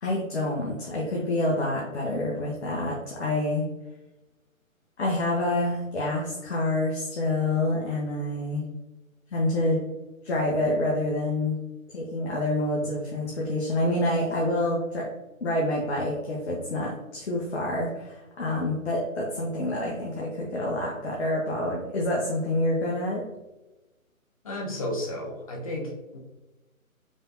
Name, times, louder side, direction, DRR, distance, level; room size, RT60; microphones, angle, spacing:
voice 1, 0.0-3.7 5.0-8.7 9.3-9.8 10.2-11.5 11.9-15.0 15.4-23.2, left 1 dB, 50° left, -3 dB, 1.1 m, -27 dB
voice 2, 24.4-26.2, left 1 dB, 25° left, -1 dB, 0.7 m, -33 dB
5.3 x 3.4 x 2.7 m, 1.0 s
figure-of-eight pair, 145°, 42 cm